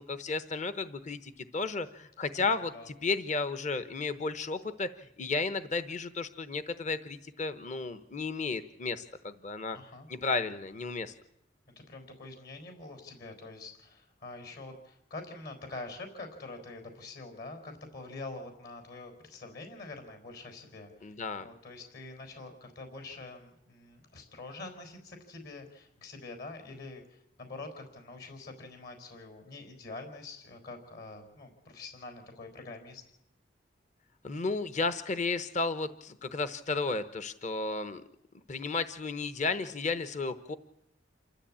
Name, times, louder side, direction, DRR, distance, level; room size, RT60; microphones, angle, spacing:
voice 1, 0.0-9.8 10.1-11.1 21.0-21.5 34.2-38.0 38.5-40.6, left 3 dB, 40° left, 12 dB, 0.9 m, -33 dB
voice 2, 2.4-2.9 9.7-10.1 11.8-33.0, left 3 dB, 60° left, 6 dB, 4.3 m, -45 dB
27.5 x 13.0 x 8.6 m, 0.80 s
head